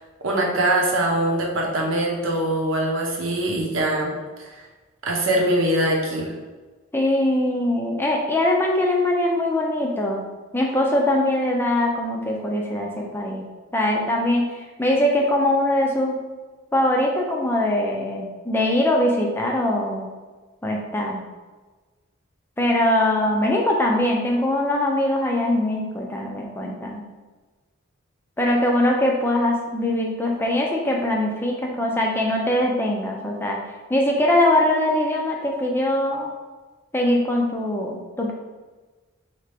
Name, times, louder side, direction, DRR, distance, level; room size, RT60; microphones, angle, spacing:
voice 1, 0.2-4.1 4.4-4.5 5.0-6.3, right 1 dB, 75° right, -1 dB, 0.9 m, -22 dB
voice 2, 6.9-10.2 10.5-13.4 13.7-14.5 14.8-16.2 16.7-20.1 20.6-21.2 22.6-27.0 28.4-33.6 33.9-36.3 36.9-38.3, left 1 dB, 10° left, -1 dB, 0.4 m, -22 dB
4.4 x 2.8 x 3.4 m, 1.3 s
head